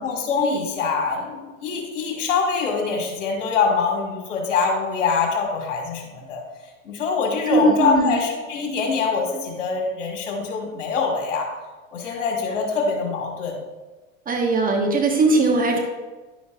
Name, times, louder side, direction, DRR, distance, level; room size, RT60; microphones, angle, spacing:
voice 1, 0.0-6.0 6.3-6.4 6.9-11.5 11.9-13.5, left 5 dB, 75° left, 0 dB, 1.9 m, -24 dB
voice 2, 7.5-8.1 14.3-15.8, right 3 dB, 25° right, 2 dB, 1.1 m, -19 dB
10.5 x 7.0 x 2.5 m, 1.2 s
hypercardioid pair, 105°, 36 cm